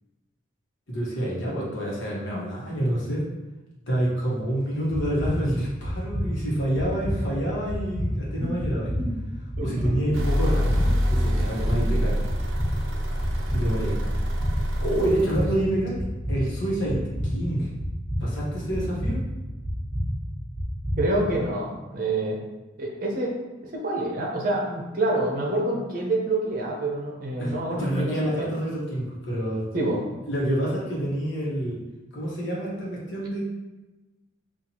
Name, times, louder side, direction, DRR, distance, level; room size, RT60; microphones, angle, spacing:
voice 1, 0.9-3.3 3.9-8.9 9.6-12.2 13.5-14.0 14.8-16.0 16.3-17.7 18.2-19.2 27.4-29.7 30.3-31.8 32.1-33.4, right 1 dB, 65° left, -5 dB, 1.1 m, -27 dB
sound 1, 4.9-21.3, equal, 10° right, 0.8 m, -30 dB
voice 2, 9.6-10.1 21.0-22.4 22.8-23.3 23.6-28.5 29.7-30.0, right 2 dB, 45° right, -1 dB, 0.7 m, -27 dB
sound 2, 10.1-15.7, equal, 75° right, 0.5 m, -26 dB
4.3 x 2.4 x 2.8 m, 1.1 s
head